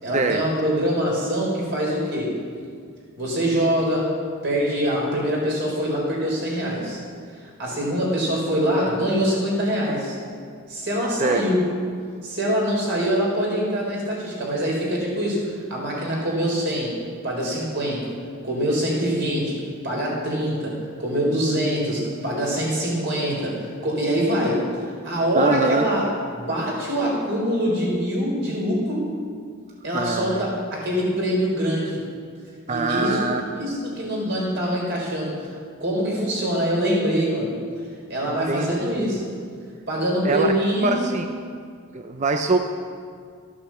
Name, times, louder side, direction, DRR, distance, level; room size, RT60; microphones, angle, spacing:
voice 1, 0.0-2.4 3.2-4.1 4.4-7.0 7.6-10.2 10.7-11.6 12.2-17.0 17.2-18.1 18.4-24.6 25.0-26.1 26.3-29.1 29.8-32.0 32.7-35.4 35.8-37.6 38.1-39.3 39.9-41.1, equal, 55° right, -3 dB, 4.4 m, -24 dB
voice 2, 25.4-25.9 29.9-30.5 32.7-33.4 38.3-38.7 39.0-39.2 40.2-40.5 40.8-41.2 41.9-42.6, right 3 dB, 35° right, 5 dB, 0.5 m, -23 dB
14.0 x 8.6 x 7.5 m, 2.1 s
head